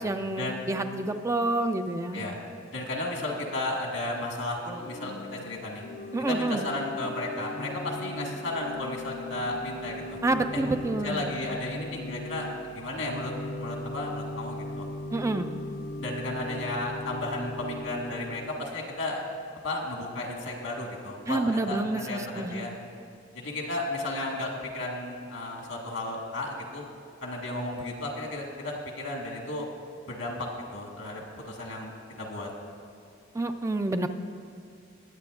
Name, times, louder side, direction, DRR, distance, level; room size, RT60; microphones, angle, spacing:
voice 1, 0.0-2.3 6.1-6.6 10.2-11.3 15.1-15.5 21.3-22.7 33.3-34.1, right 2 dB, 15° right, 8 dB, 0.4 m, -28 dB
voice 2, 2.7-5.8 6.3-10.2 10.5-10.6 11.0-14.9 16.0-19.2 19.6-22.7 23.3-24.5 24.7-26.8 27.2-29.7 30.1-31.9 32.2-32.5, left 2 dB, 85° left, 0 dB, 1.8 m, -34 dB
Organ / Church bell, 4.7-18.9, left 1 dB, 70° left, 0.6 m, -39 dB
20.0 x 8.5 x 2.4 m, 2.4 s
head